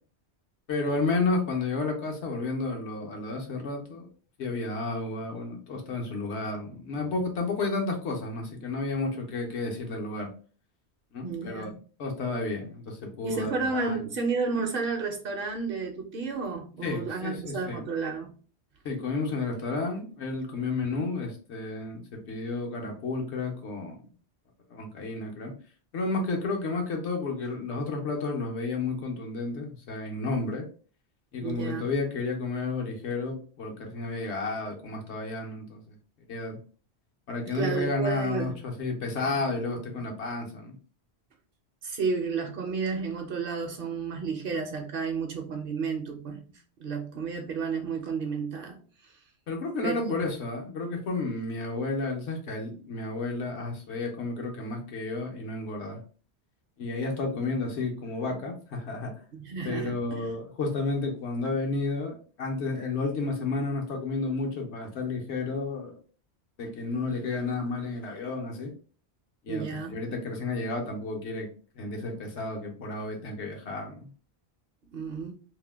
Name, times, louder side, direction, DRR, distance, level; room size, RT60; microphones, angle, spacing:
voice 1, 0.7-4.1 4.4-10.3 11.1-11.7 12.0-14.0 16.8-17.8 18.8-24.0 24.7-25.5 25.9-30.7 31.3-36.0 36.3-36.6 37.3-40.8 49.5-56.0 56.8-59.1 59.6-66.0 66.6-68.7 69.4-71.5 71.7-74.1, left 3 dB, 80° left, 1.1 m, -31 dB
voice 2, 11.2-11.8 13.2-18.3 31.4-31.9 37.4-38.6 38.9-39.0 41.8-46.4 46.8-49.1 49.8-50.3 59.3-60.3 69.5-70.0 74.9-75.3, right 4 dB, 60° right, 0.7 m, -32 dB
2.7 x 2.1 x 3.2 m
omnidirectional pair, 1.1 m